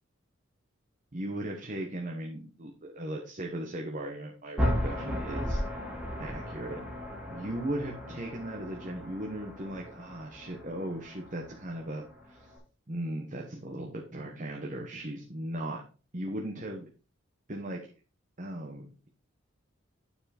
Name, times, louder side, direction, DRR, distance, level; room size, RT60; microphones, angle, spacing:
voice 1, 1.1-5.6 6.2-6.8 7.3-12.5 12.9-15.8 16.1-16.8 17.5-17.9 18.4-19.1, right 1 dB, 40° right, 0 dB, 1.2 m, -37 dB
sound 1, 4.6-12.6, equal, 5° right, 2.7 m, -35 dB
9.2 x 4.8 x 4.3 m, 0.36 s
head